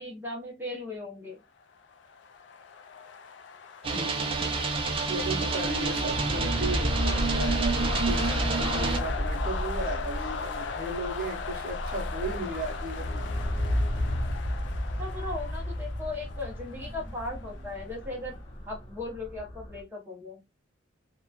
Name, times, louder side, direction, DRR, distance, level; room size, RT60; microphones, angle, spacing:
voice 1, 0.0-1.4 15.0-18.4 18.7-20.5, left 2 dB, 10° right, 0.7 m, -37 dB
sound 1, 1.7-18.4, left 5 dB, 60° left, 0.3 m, -39 dB
sound 2, 3.8-9.0, right 4 dB, 25° right, 0.3 m, -28 dB
voice 2, 3.9-4.5 5.1-13.3, right 2 dB, 45° right, 0.7 m, -36 dB
sound 3, 4.2-19.8, equal, 30° left, 0.6 m, -33 dB
2.9 x 2.1 x 2.3 m
head